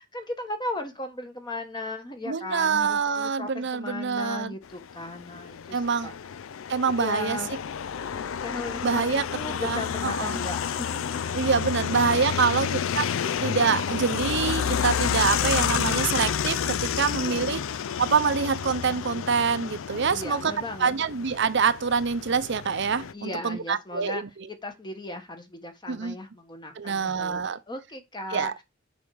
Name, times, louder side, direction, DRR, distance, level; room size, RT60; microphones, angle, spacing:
voice 1, 0.0-6.1 6.9-7.5 7.9-11.6 17.0-17.7 20.1-20.9 23.1-24.2 24.5-28.6, left 2 dB, 20° left, 1.2 m, -37 dB
voice 2, 2.3-4.5 5.7-6.1 6.7-7.4 8.8-9.2 9.6-10.4 11.3-12.7 12.9-13.0 13.4-17.6 18.0-20.5 20.8-24.2 25.9-26.2 26.8-27.6 28.3-28.5, right 5 dB, 60° right, 0.7 m, -25 dB
sound 1, 4.7-23.1, left 8 dB, 80° left, 0.4 m, -30 dB
7.1 x 5.1 x 4.7 m
head